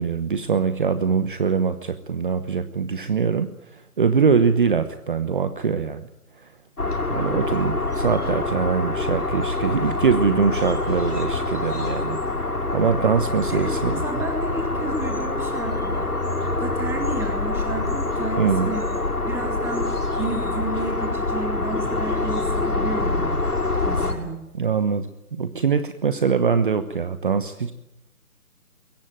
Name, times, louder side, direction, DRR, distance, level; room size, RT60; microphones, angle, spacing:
voice 1, 0.0-6.1 6.4-6.5 7.1-13.9 18.4-18.7 24.5-27.7, right 6 dB, 35° right, 11 dB, 1.0 m, -23 dB
sound 1, 6.8-24.1, left 2 dB, 90° left, 6.2 m, -25 dB
voice 2, 13.5-18.9 19.2-19.9 20.2-23.3 23.8-24.4, right 3 dB, 5° right, 3 dB, 2.2 m, -32 dB
22.0 x 17.0 x 9.0 m, 0.88 s
figure-of-eight pair, 160°, 44 cm